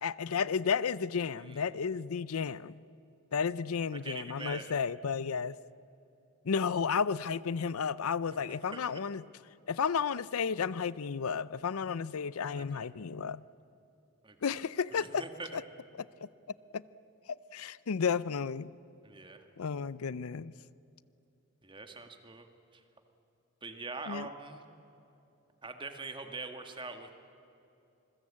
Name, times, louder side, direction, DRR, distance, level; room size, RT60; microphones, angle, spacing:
voice 1, 0.0-2.7 3.3-5.6 6.4-9.2 9.7-13.4 14.4-15.2 15.5-15.6 15.9-16.3 16.7-16.8 17.3-18.7 19.6-20.5 24.1-24.3, left 6 dB, 80° left, 18 dB, 0.5 m, -32 dB
voice 2, 4.0-4.6 8.3-8.8 12.6-12.9 14.2-14.6 15.0-15.5 19.0-19.4 21.6-22.5 22.7-22.8 23.6-24.6 25.6-27.1, right 3 dB, 20° right, 6 dB, 1.7 m, -43 dB
27.0 x 21.0 x 8.6 m, 2.9 s
head